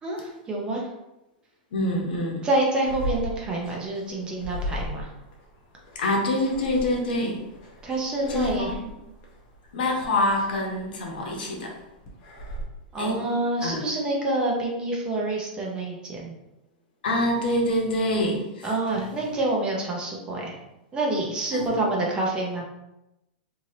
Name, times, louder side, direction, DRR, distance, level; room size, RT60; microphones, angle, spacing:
voice 1, 0.0-0.9 2.4-5.1 7.8-8.7 12.9-16.3 18.6-20.5 20.9-22.6, right 2 dB, 15° right, -2 dB, 0.6 m, -27 dB
voice 2, 1.7-2.5 5.9-7.4 8.3-8.9 9.7-11.8 13.0-13.2 13.6-13.8 17.0-18.7 21.5-21.7, left 1 dB, 85° left, -1 dB, 0.9 m, -26 dB
sound 1, 2.8-12.6, equal, 40° left, 0.7 m, -37 dB
3.1 x 2.7 x 2.7 m, 0.95 s
supercardioid pair, 150°, 5 cm